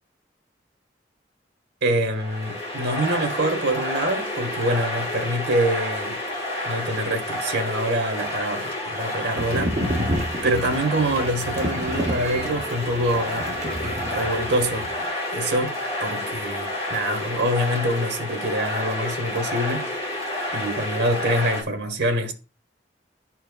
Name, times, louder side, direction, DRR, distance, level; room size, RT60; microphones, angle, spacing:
voice 1, 1.8-6.2 6.6-9.7 10.4-14.9 15.3-20.2 20.5-22.3, right 1 dB, 75° right, 1.3 m, -25 dB
sound 1, 2.1-21.6, left 1 dB, 35° left, 1.4 m, -30 dB
sound 2, 9.4-15.0, equal, 35° right, 0.8 m, -30 dB
11.0 x 4.5 x 2.3 m
head